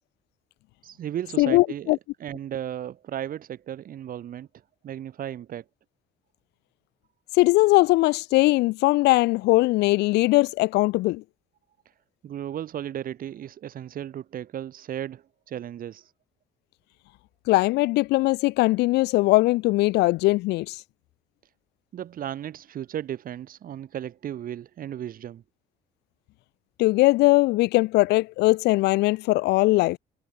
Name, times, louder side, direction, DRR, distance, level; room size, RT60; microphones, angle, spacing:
voice 1, 0.8-4.5 4.8-5.6 11.9-12.0 12.2-16.1 21.9-25.4, right 10 dB, 55° right, 5.8 m, -35 dB
voice 2, 1.4-2.0 7.4-11.2 17.5-20.8 26.8-30.0, left 20 dB, 80° left, 0.5 m, -20 dB
cardioid pair, 110°, 17 cm